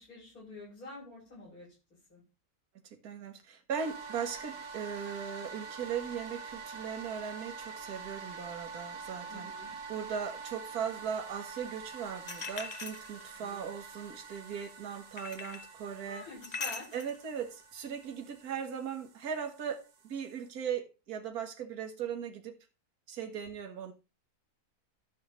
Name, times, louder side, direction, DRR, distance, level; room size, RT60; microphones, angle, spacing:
voice 1, 0.0-1.7 2.1-2.2 9.3-9.7 13.4-13.6 16.1-16.9, left 2 dB, 65° left, 7.0 m, -47 dB
voice 2, 3.0-16.3 16.9-22.6 23.1-23.9, right 7 dB, 70° right, 1.8 m, -38 dB
sound 1, 3.8-20.5, right 5 dB, 90° right, 1.8 m, -46 dB
sound 2, 12.3-13.5 15.2-15.7 16.4-17.2, left 5 dB, 35° left, 0.7 m, -40 dB
12.0 x 7.4 x 3.1 m
omnidirectional pair, 1.7 m